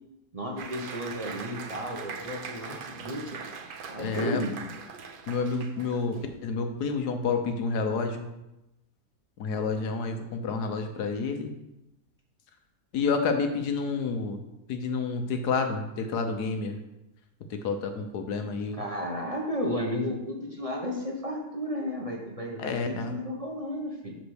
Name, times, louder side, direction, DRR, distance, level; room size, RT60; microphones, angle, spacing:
voice 1, 0.3-3.4 3.9-4.5 18.7-24.1, equal, 25° right, -1 dB, 0.9 m, -33 dB
Applause, 0.6-6.3, right 5 dB, 60° right, 0.5 m, -41 dB
voice 2, 4.0-4.4 5.3-8.3 9.4-11.5 12.9-14.4 14.7-16.8 17.5-18.8 22.6-23.2, left 4 dB, 90° left, 6 dB, 1.5 m, -29 dB
8.1 x 4.1 x 6.4 m, 0.91 s
omnidirectional pair, 1.7 m